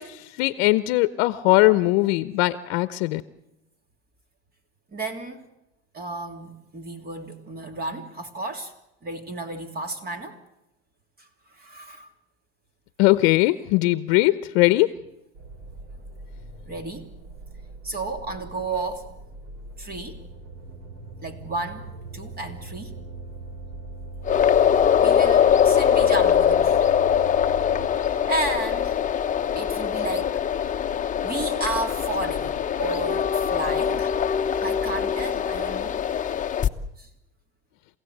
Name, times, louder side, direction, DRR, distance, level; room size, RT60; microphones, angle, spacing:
voice 1, 0.0-3.2 13.0-14.9, left 19 dB, 65° left, 0.9 m, -20 dB
voice 2, 4.9-5.5 5.9-8.7 9.0-10.4 11.5-12.1 16.7-17.1 17.8-19.1 19.8-20.2 21.2-22.9 25.0-26.9 28.0-29.0 29.5-30.4 31.2-32.5 32.8-34.1 34.6-36.0 37.0-37.1, right 2 dB, 30° right, 2.9 m, -32 dB
sound 1, 15.3-27.9, right 2 dB, 60° right, 5.2 m, -40 dB
sound 2, 24.2-36.7, left 8 dB, 25° left, 1.0 m, -22 dB
29.0 x 16.5 x 8.0 m
supercardioid pair, 115°, 33 cm